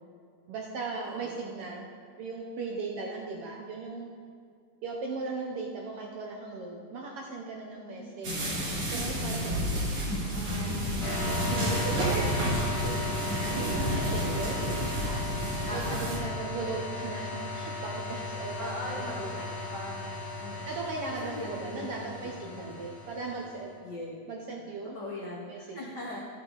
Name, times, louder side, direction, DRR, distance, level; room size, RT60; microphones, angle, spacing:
voice 1, 0.5-1.9 2.2-4.1 4.8-8.5 8.9-9.7 10.3-12.9 13.7-14.6 15.0-15.2 15.7-19.5 20.2-20.4 20.6-23.8 24.3-25.0 25.5-25.8, right 3 dB, 70° right, 0 dB, 1.4 m, -38 dB
voice 2, 1.1-1.4 7.9-8.2 9.4-10.0 15.7-16.3 18.6-19.4 19.7-20.0 20.4-20.7 21.2-22.1 22.5-22.8 23.8-24.1 24.8-26.2, left 1 dB, 80° left, -3 dB, 0.9 m, -40 dB
sound 1, 8.2-16.2, right 1 dB, 45° right, 3.2 m, -30 dB
sound 2, 11.0-23.6, left 3 dB, 60° left, 3.7 m, -36 dB
12.0 x 7.6 x 3.9 m, 2.2 s
omnidirectional pair, 3.5 m